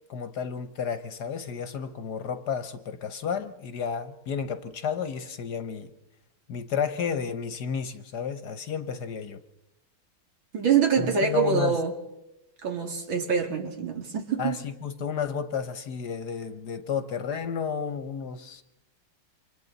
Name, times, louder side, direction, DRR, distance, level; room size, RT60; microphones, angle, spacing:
voice 1, 0.1-5.9 6.5-9.4 11.0-11.8 14.4-18.6, left 6 dB, 60° left, 10 dB, 1.3 m, -32 dB
voice 2, 10.5-11.9 12.6-14.6, right 6 dB, 75° right, 3 dB, 3.2 m, -25 dB
29.5 x 25.5 x 4.0 m, 0.88 s
omnidirectional pair, 2.2 m